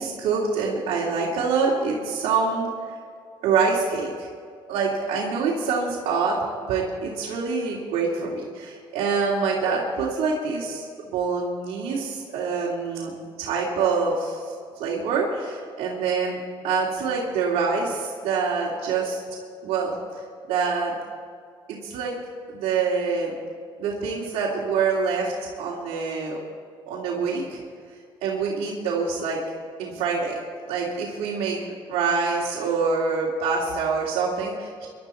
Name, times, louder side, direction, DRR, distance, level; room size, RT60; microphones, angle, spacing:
voice 1, 0.0-2.7 3.4-4.3 4.7-6.4 6.7-10.9 11.1-14.5 14.8-16.4 16.6-19.2 19.6-19.9 20.5-20.9 21.7-22.1 22.5-23.3 23.8-26.4 26.9-27.6 28.2-29.4 29.8-30.4 30.7-31.6 31.9-34.9, right 5 dB, 90° right, -5 dB, 2.8 m, -25 dB
24.0 x 12.0 x 4.5 m, 2.2 s
cardioid pair, 95°, 10 cm